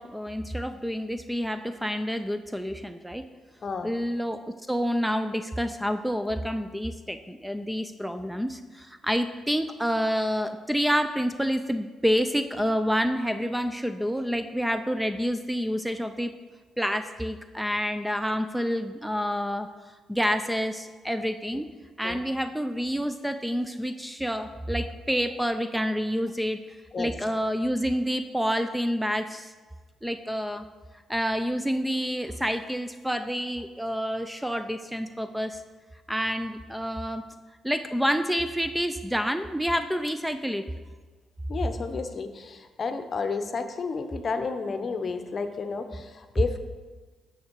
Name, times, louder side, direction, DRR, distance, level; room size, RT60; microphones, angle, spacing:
voice 1, 0.0-3.2 3.8-4.4 4.7-16.3 16.8-19.7 20.1-21.7 22.0-26.6 27.0-29.5 30.0-30.6 31.1-35.6 36.1-37.2 37.6-40.6, equal, 5° right, 9 dB, 0.4 m, -28 dB
voice 2, 41.5-46.6, left 4 dB, 45° left, 8 dB, 0.8 m, -31 dB
9.3 x 6.7 x 4.6 m, 1.4 s
cardioid pair, 90°, 0 cm